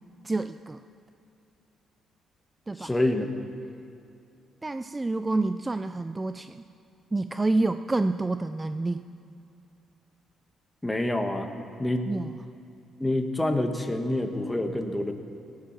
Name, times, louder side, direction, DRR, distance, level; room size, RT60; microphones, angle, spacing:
voice 1, 0.2-0.8 2.7-2.9 4.6-6.6 7.1-9.0 12.1-12.3, right 2 dB, 20° right, 10 dB, 0.4 m, -28 dB
voice 2, 2.8-3.3 10.8-11.5 11.8-12.1 13.0-15.1, left 1 dB, 10° left, 5 dB, 1.4 m, -27 dB
18.0 x 10.5 x 6.0 m, 2.5 s
cardioid pair, 90°, 0 cm